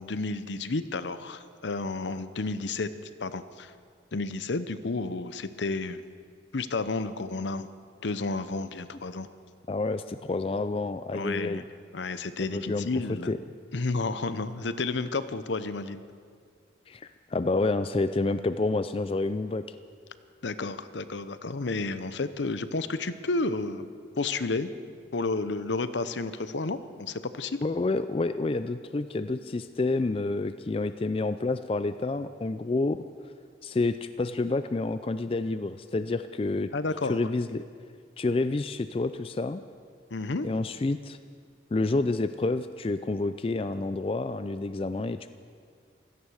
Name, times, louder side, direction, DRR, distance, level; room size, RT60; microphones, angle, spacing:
voice 1, 0.0-2.9 3.2-3.7 4.1-6.0 6.5-7.7 8.0-9.3 11.1-11.6 11.9-13.3 13.7-16.0 20.4-24.7 25.1-27.6 36.7-37.2 40.1-40.5, left 3 dB, 75° left, 12 dB, 0.7 m, -31 dB
voice 2, 9.7-11.6 12.4-12.9 13.3-13.4 16.9-19.6 27.6-33.0 33.6-36.7 37.1-37.6 38.2-39.6 40.4-41.2 41.7-45.3, left 3 dB, 30° left, 11 dB, 0.3 m, -29 dB
16.5 x 14.0 x 6.4 m, 2.1 s
head